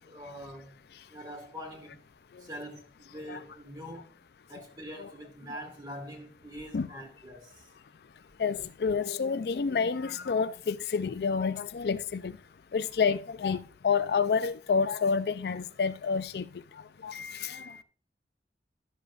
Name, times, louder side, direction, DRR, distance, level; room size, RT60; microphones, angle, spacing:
voice 1, 0.1-0.7 1.1-2.0 2.4-4.2 4.5-7.7, equal, 25° right, 2.3 m, -44 dB
voice 2, 8.4-12.4 12.7-16.5 17.0-17.8, left 5 dB, 65° left, 0.4 m, -29 dB
12.0 x 7.1 x 2.4 m
head